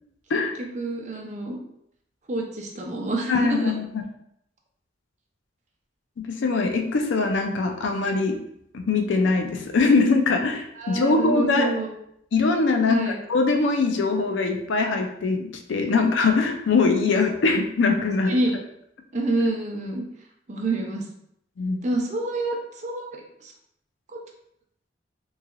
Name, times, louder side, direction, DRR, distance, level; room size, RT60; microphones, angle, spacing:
voice 1, 0.6-1.6 2.3-3.7 10.8-11.9 12.7-13.2 15.9-16.0 18.3-18.5 19.1-20.0 20.5-21.0 21.8-22.6 22.8-23.1 23.4-23.5, right 2 dB, 40° right, 0 dB, 0.5 m, -27 dB
voice 2, 3.3-4.0 6.2-8.4 8.7-11.7 12.3-18.3 21.6-21.8, left 4 dB, 75° left, 4 dB, 0.4 m, -22 dB
3.1 x 2.8 x 2.4 m, 0.75 s
head